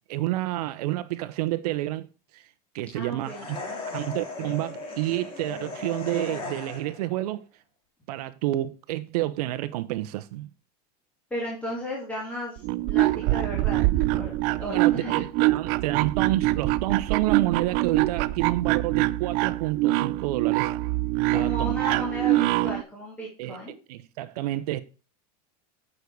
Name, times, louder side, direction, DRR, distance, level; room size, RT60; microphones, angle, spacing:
voice 1, 0.1-2.1 2.3-2.5 2.7-3.6 3.9-7.4 8.1-10.5 14.6-20.7 21.3-21.7 23.4-23.6 23.9-24.8, right 16 dB, 75° right, 0.9 m, -29 dB
voice 2, 2.9-3.4 11.3-14.3 14.6-15.2 21.3-23.7, equal, 5° left, 2.6 m, -35 dB
sound 1, 3.2-7.1, left 3 dB, 25° left, 2.7 m, -37 dB
sound 2, 12.6-22.8, right 17 dB, 45° right, 0.5 m, -24 dB
9.5 x 6.5 x 4.7 m
supercardioid pair, 160°, 20 cm